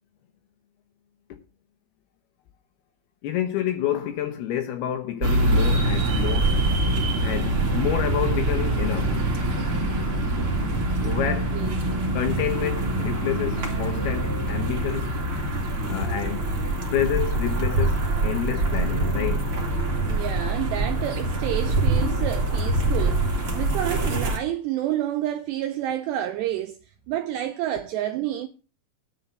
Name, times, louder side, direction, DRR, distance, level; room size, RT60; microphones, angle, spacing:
voice 1, 3.2-6.5 7.2-9.1 11.0-11.6 12.1-15.2 15.9-16.4 16.9-19.5, left 10 dB, 75° left, 2.4 m, -28 dB
sound 1, 5.2-24.4, right 2 dB, 35° right, 2.2 m, -24 dB
voice 2, 20.0-26.8 27.1-28.5, right 12 dB, 80° right, 2.5 m, -29 dB
10.5 x 5.4 x 8.1 m
omnidirectional pair, 5.7 m